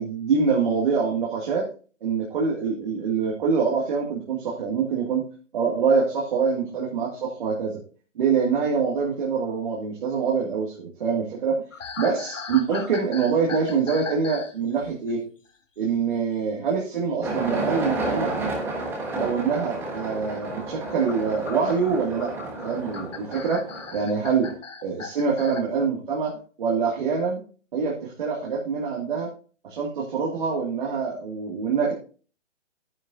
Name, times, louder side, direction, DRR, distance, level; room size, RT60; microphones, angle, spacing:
voice 1, 0.0-1.7 2.0-5.2 5.5-7.8 8.2-11.6 12.0-15.2 15.8-18.4 19.2-23.6 23.9-24.5 24.8-27.4 27.7-29.3 29.6-31.9, right 5 dB, 40° right, -2 dB, 2.2 m, -25 dB
sound 1, 11.7-14.5 14.8-15.1 17.3-17.5 18.8-18.9 20.8-25.6, left 5 dB, 80° left, 1.8 m, -38 dB
sound 2, 17.2-24.5, right 2 dB, 5° right, 1.2 m, -31 dB
10.5 x 9.7 x 2.6 m, 0.38 s
hypercardioid pair, 160°, 37 cm